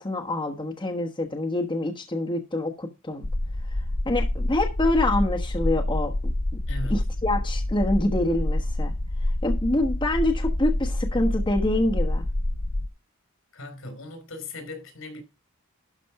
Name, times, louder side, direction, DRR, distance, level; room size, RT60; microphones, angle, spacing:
voice 1, 0.0-3.3 4.0-6.3 6.9-8.9 9.4-12.3, left 1 dB, 25° left, 1.2 m, -26 dB
sound 1, 3.2-12.9, left 1 dB, 40° left, 0.7 m, -27 dB
voice 2, 6.7-7.0 13.5-15.2, left 2 dB, 70° left, 3.7 m, -38 dB
12.0 x 4.2 x 5.8 m
head